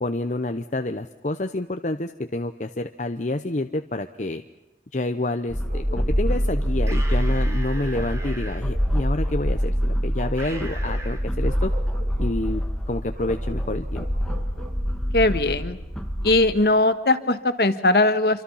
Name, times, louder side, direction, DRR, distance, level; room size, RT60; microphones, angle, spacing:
voice 1, 0.0-4.4 4.9-11.7 12.2-12.6 12.9-14.0, left 2 dB, 45° left, 7 dB, 0.8 m, -28 dB
sound 1, 5.5-16.5, equal, 5° left, 1.7 m, -25 dB
Bark, 5.7-7.3 7.7-9.5 10.1-11.1 11.4-12.4 13.1-14.8, right 1 dB, 50° right, 4.8 m, -44 dB
sound 2, 6.8-8.6 10.4-11.2, right 2 dB, 15° right, 3.1 m, -39 dB
voice 2, 15.1-15.8 16.2-18.4, left 2 dB, 60° left, 10 dB, 1.6 m, -20 dB
28.0 x 25.0 x 5.7 m, 1.0 s
head